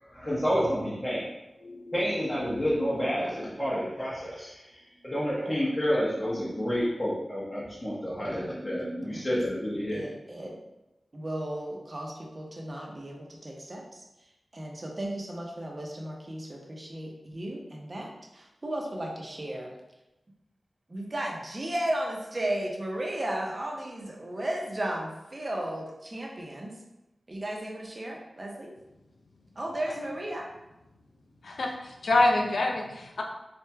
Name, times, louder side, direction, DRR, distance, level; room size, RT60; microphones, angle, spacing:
voice 1, 0.0-1.3 1.6-10.0, equal, 25° left, -8 dB, 0.9 m, -29 dB
voice 2, 5.4-5.7 6.2-6.3 9.0-9.3 9.9-10.6 11.1-14.0 14.5-19.8 20.9-26.8 27.3-28.7 29.6-30.5, right 1 dB, 40° right, -1 dB, 0.8 m, -35 dB
voice 3, 31.4-33.2, left 2 dB, 85° left, 1 dB, 0.6 m, -26 dB
4.1 x 3.1 x 2.3 m, 0.95 s
wide cardioid pair, 60°, 0 cm